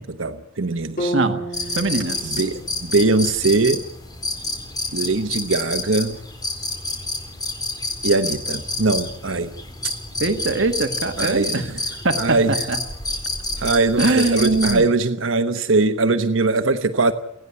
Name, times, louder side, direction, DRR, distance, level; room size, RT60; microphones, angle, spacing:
voice 1, 0.0-1.1 2.2-3.8 4.9-6.2 8.0-9.5 9.8-9.9 11.2-11.6 12.2-12.5 13.6-17.1, right 3 dB, 80° right, 8 dB, 1.1 m, -21 dB
sound 1, 1.0-5.0, right 1 dB, 45° left, 3.4 m, -33 dB
sound 2, 1.5-14.8, left 2 dB, 20° left, 4.2 m, -29 dB
voice 2, 1.7-2.4 10.2-11.7 12.0-12.8 14.0-14.9, right 3 dB, 65° right, 6 dB, 1.7 m, -22 dB
29.5 x 9.9 x 9.7 m, 0.77 s
head